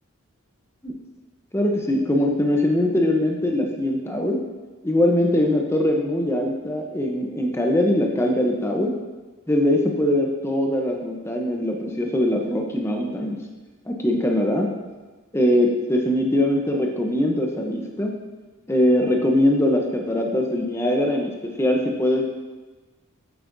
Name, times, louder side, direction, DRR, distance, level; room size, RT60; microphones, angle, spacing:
voice 1, 1.5-4.4 4.8-8.9 9.5-13.4 13.9-14.7 15.3-18.1 18.7-21.3 21.6-22.2, left 1 dB, 10° left, 1 dB, 0.7 m, -22 dB
8.7 x 8.0 x 2.6 m, 1.2 s
head